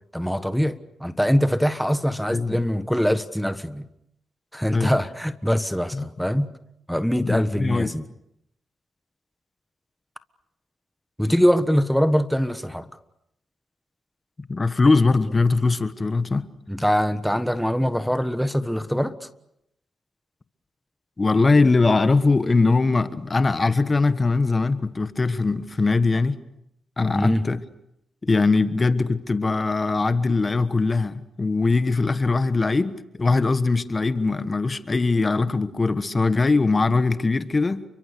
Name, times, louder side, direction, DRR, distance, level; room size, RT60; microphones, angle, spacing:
voice 1, 0.1-3.9 4.5-6.5 6.9-8.0 11.2-12.9 16.7-19.3 27.1-27.4, equal, ahead, 1.3 m, -23 dB
voice 2, 2.3-2.6 4.7-4.9 5.9-6.1 7.2-7.9 14.5-16.5 21.2-26.4 27.0-27.6 28.2-37.8, left 3 dB, 30° left, 1.3 m, -21 dB
30.0 x 24.0 x 6.7 m
cardioid pair, 70°, 0 cm